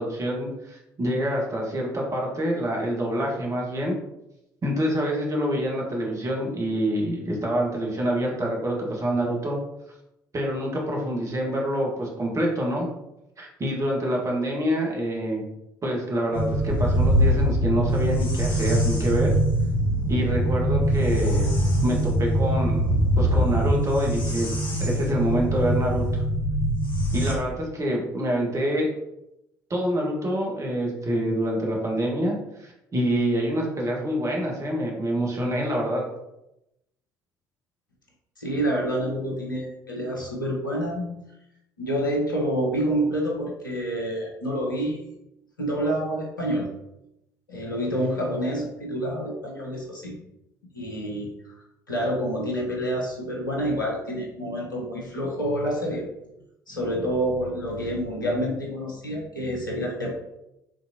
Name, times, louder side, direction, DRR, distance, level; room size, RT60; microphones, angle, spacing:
voice 1, 0.0-3.9 4.6-9.6 10.3-12.9 13.4-15.4 15.8-19.3 20.1-21.5 21.8-24.5 24.8-26.2 27.1-28.9 29.7-36.0, equal, 30° right, -1 dB, 1.6 m, -26 dB
sound 1, 16.3-27.3, right 1 dB, 50° left, 1.7 m, -23 dB
voice 2, 38.4-41.1 41.8-45.0 45.6-46.7 47.5-50.2 50.7-51.5 51.9-56.0 56.7-60.1, equal, 85° left, -1 dB, 1.0 m, -28 dB
4.9 x 3.8 x 2.8 m, 0.87 s
figure-of-eight pair, 55°, 11 cm